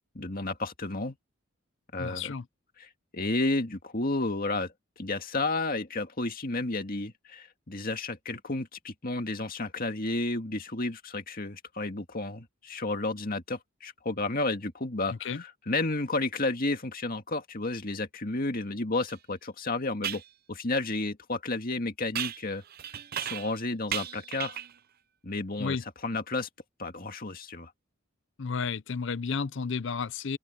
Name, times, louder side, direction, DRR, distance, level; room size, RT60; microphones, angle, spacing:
voice 1, 0.2-1.2 1.9-2.3 2.8-20.2 20.5-22.6 23.2-24.6 25.2-25.8 26.0-26.5 26.8-27.7, left 2 dB, 45° left, 2.1 m, -32 dB
voice 2, 2.0-2.4 15.2-15.4 25.6-25.8 28.4-30.4, left 5 dB, 60° left, 0.6 m, -32 dB
sound 1, 19.1-19.2 20.0-20.3 22.1-23.6 23.9-24.8, right 10 dB, 45° right, 0.6 m, -35 dB
head